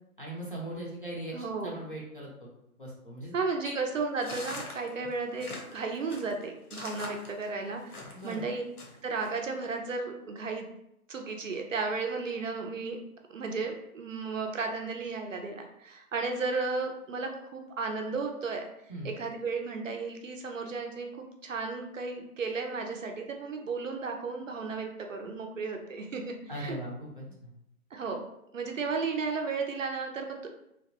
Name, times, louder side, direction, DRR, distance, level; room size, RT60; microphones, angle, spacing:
voice 1, 0.2-1.3 1.6-2.3 2.8-3.3 4.8-5.0 8.1-8.4 18.9-19.1 26.5-27.5, right 1 dB, 35° left, -5 dB, 0.5 m, -39 dB
voice 2, 1.3-1.8 3.3-8.6 9.0-10.7 11.1-13.0 13.3-18.6 19.0-26.8 27.9-28.2 28.5-30.5, right 4 dB, 60° right, 3 dB, 0.5 m, -34 dB
sound 1, 4.2-8.4 8.8-9.3, left 2 dB, 75° left, 0.9 m, -42 dB
2.8 x 2.0 x 2.8 m, 0.81 s
hypercardioid pair, 175°, 45 cm